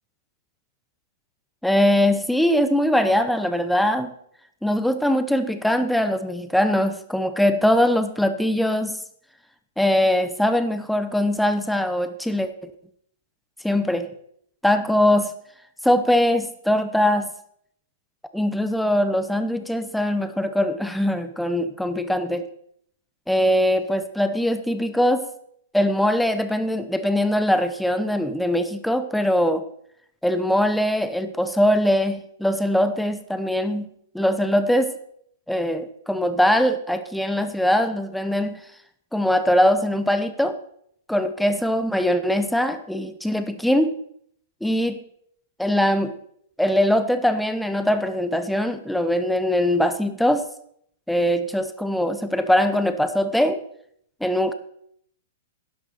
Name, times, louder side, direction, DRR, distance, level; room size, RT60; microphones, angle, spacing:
voice 1, 1.6-4.1 4.6-9.0 9.8-12.7 13.6-14.1 14.6-15.3 15.8-17.3 18.3-22.5 23.3-25.3 25.7-29.6 30.2-34.9 35.5-38.6 39.1-40.6 41.1-43.9 44.6-45.0 45.6-46.1 46.6-50.4 51.1-53.6 54.2-54.5, left 1 dB, ahead, 10 dB, 0.8 m, -21 dB
12.0 x 11.0 x 4.3 m, 0.69 s
hypercardioid pair, 155°, 0 cm